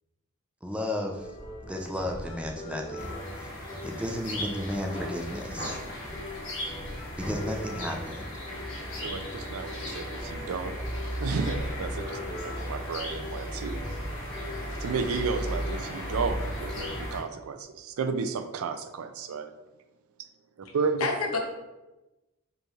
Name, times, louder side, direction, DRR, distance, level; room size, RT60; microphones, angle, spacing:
voice 1, 0.6-1.4 1.6-3.5 3.8-5.8 7.2-8.3, left 1 dB, 5° right, 2 dB, 0.4 m, -33 dB
sound 1, 1.1-16.8, left 1 dB, 40° left, 1.5 m, -43 dB
sound 2, 3.0-17.2, equal, 60° left, 1.5 m, -36 dB
voice 2, 9.0-10.7 11.2-13.9 14.8-19.5 20.7-21.1, right 5 dB, 75° right, 9 dB, 0.4 m, -32 dB
voice 3, 20.6-21.4, left 4 dB, 85° left, 2 dB, 0.8 m, -30 dB
5.1 x 3.1 x 2.4 m, 1.0 s
head